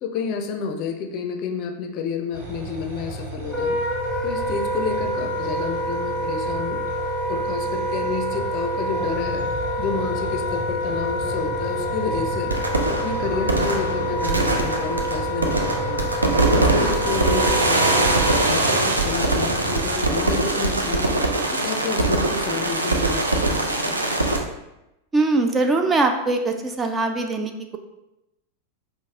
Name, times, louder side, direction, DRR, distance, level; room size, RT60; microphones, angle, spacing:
voice 1, 0.0-3.8 4.2-6.8 7.3-9.4 9.8-12.5 12.9-16.1 16.5-18.2 18.5-24.0, left 5 dB, 40° left, 5 dB, 0.5 m, -30 dB
sound 1, 2.3-19.9, right 1 dB, 55° right, 0.9 m, -34 dB
Wind instrument woodwind instrument, 3.4-18.4, equal, 5° left, 1.1 m, -27 dB
sound 2, 12.5-24.4, right 2 dB, 80° right, 0.4 m, -22 dB
voice 2, 25.1-27.8, right 3 dB, 20° right, 5 dB, 0.3 m, -22 dB
5.1 x 2.0 x 3.6 m, 0.92 s
figure-of-eight pair, 90°, 0 cm